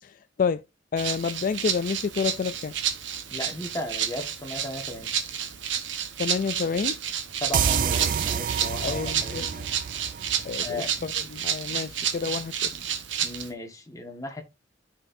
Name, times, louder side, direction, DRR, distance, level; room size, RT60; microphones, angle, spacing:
voice 1, 0.0-0.6 0.9-2.7 6.2-7.0 8.8-9.5 10.4-12.7, left 5 dB, 45° left, 0.3 m, -29 dB
Rattle (instrument), 1.0-13.5, right 8 dB, 85° right, 1.0 m, -31 dB
voice 2, 3.3-5.1 7.4-9.7 10.6-11.3 13.2-14.4, left 1 dB, 20° left, 1.4 m, -36 dB
sound 1, 7.5-11.0, right 7 dB, 45° right, 0.3 m, -28 dB
13.0 x 4.4 x 2.6 m
head